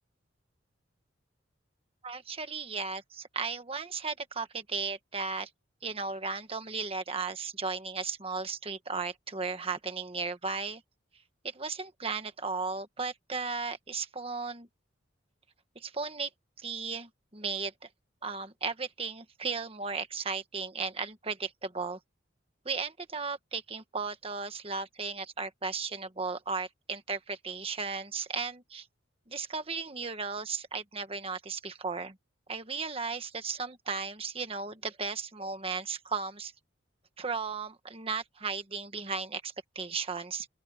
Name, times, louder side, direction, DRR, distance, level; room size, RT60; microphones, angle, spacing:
voice 1, 2.0-5.5 5.8-10.8 11.4-14.7 15.7-16.3 16.6-17.7 18.2-22.0 22.6-28.9 29.3-32.1 32.5-36.5 37.2-40.5, right 4 dB, 30° right, 1.4 m, -35 dB
open air
head